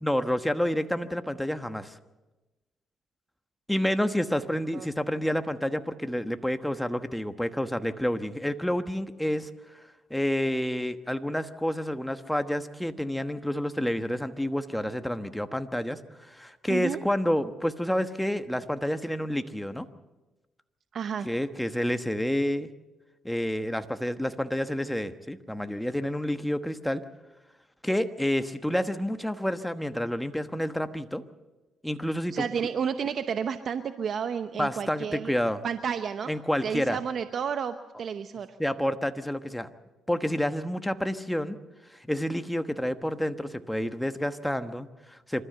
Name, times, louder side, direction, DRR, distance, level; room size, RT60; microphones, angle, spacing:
voice 1, 0.0-1.9 3.7-9.5 10.1-16.0 16.3-19.9 21.2-22.7 23.2-27.0 27.8-31.2 31.8-32.4 34.6-35.6 36.3-37.0 38.6-39.7 40.1-41.6 42.1-45.4, equal, 5° left, 9 dB, 1.2 m, -29 dB
voice 2, 16.7-17.0 20.9-21.3 32.3-35.3 35.6-36.3 36.6-38.5, right 7 dB, 55° right, 10 dB, 0.8 m, -31 dB
26.5 x 13.0 x 8.0 m, 1.1 s
cardioid pair, 90°, 0 cm